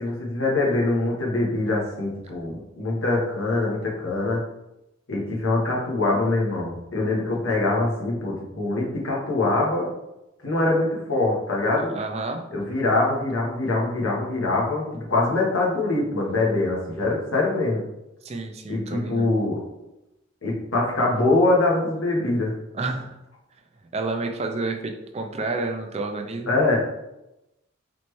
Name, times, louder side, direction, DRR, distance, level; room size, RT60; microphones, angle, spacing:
voice 1, 0.0-4.4 5.1-9.9 10.4-11.9 12.5-17.8 18.7-19.6 20.4-22.5 26.5-26.8, left 2 dB, 85° left, -3 dB, 1.3 m, -23 dB
voice 2, 11.8-12.4 18.2-19.3 22.7-23.2 23.9-26.5, right 3 dB, 30° right, 4 dB, 0.4 m, -30 dB
4.1 x 3.2 x 3.1 m, 0.91 s
head